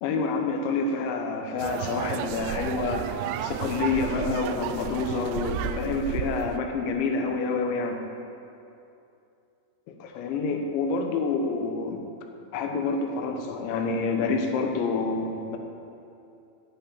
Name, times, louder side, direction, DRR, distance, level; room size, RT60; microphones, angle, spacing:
voice 1, 0.0-8.0 9.9-12.0 12.5-15.6, left 4 dB, 85° left, 3 dB, 3.5 m, -28 dB
sound 1, 1.6-6.6, right 9 dB, 85° right, 2.8 m, -32 dB
11.5 x 11.0 x 9.0 m, 2.7 s
omnidirectional pair, 5.1 m